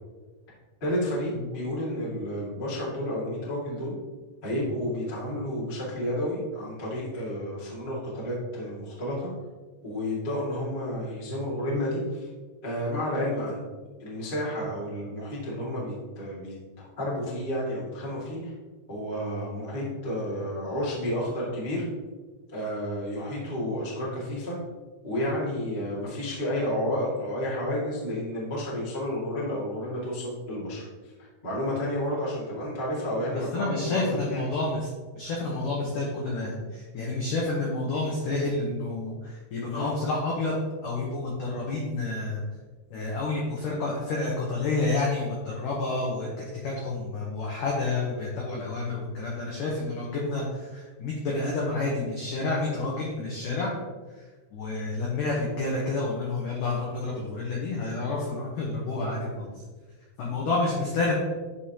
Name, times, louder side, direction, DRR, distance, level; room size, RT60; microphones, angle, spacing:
voice 1, 0.8-3.9 4.4-9.3 9.8-12.3 12.6-13.6 14.0-18.4 18.9-21.8 22.5-24.5 25.0-30.9 31.4-34.4 39.7-39.9, left 1 dB, 60° left, -7 dB, 0.5 m, -31 dB
voice 2, 33.5-34.9 35.2-40.6 40.8-42.4 42.9-53.7 54.5-59.5 60.2-61.2, left 3 dB, 90° left, -3 dB, 1.8 m, -29 dB
10.5 x 5.0 x 2.9 m, 1.3 s
omnidirectional pair, 5.3 m